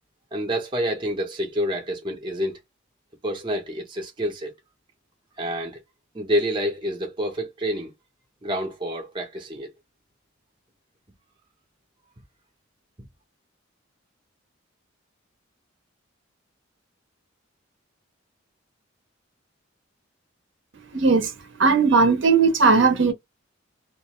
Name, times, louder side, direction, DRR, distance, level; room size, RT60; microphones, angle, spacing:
voice 1, 0.3-2.6 3.2-4.5 5.4-5.8 6.1-7.9 8.4-9.7, equal, 25° right, 0.7 m, -28 dB
voice 2, 20.9-21.3 21.6-23.1, right 4 dB, 60° right, 0.8 m, -17 dB
2.5 x 2.3 x 2.9 m
head